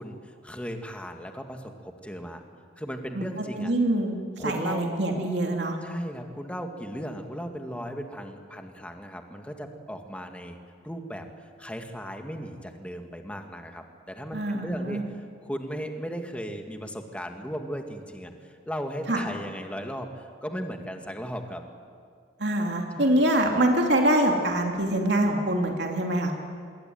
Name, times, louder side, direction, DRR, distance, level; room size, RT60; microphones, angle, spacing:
voice 1, 0.0-2.4 2.8-3.7 4.4-4.8 5.8-10.6 10.8-15.0 15.4-21.6 22.9-23.3, equal, 5° left, 4 dB, 2.1 m, -36 dB
voice 2, 3.6-5.8 14.3-15.0 19.1-19.2 22.4-26.3, right 1 dB, 65° right, 1 dB, 2.9 m, -24 dB
26.0 x 22.0 x 9.5 m, 2.1 s
head